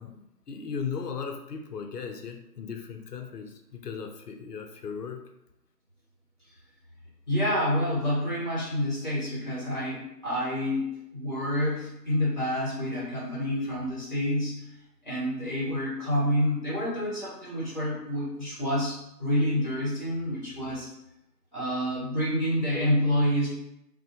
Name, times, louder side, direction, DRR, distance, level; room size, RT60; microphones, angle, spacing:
voice 1, 0.0-5.2, left 6 dB, 75° left, 5 dB, 0.5 m, -37 dB
voice 2, 7.3-14.7 15.0-20.9 21.5-23.5, equal, 30° left, -7 dB, 0.9 m, -28 dB
2.4 x 2.0 x 2.7 m, 0.83 s
figure-of-eight pair, 160°, 48 cm